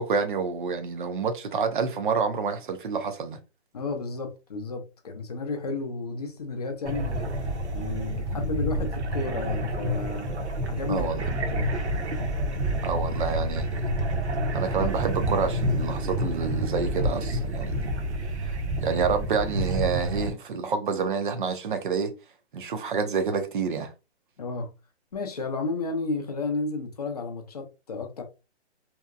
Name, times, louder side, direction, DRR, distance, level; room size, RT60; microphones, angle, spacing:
voice 1, 0.0-3.4 10.9-11.3 12.8-13.7 14.5-17.9 18.4-22.1 22.5-23.9, right 5 dB, 45° right, 0.5 m, -28 dB
voice 2, 3.7-7.3 7.7-10.3 10.7-11.1 11.5-11.7 24.4-24.7 25.1-28.2, left 3 dB, 35° left, 0.5 m, -32 dB
sound 1, 6.9-20.3, right 1 dB, 75° right, 0.8 m, -28 dB
2.8 x 2.1 x 2.3 m
hypercardioid pair, 160°, 34 cm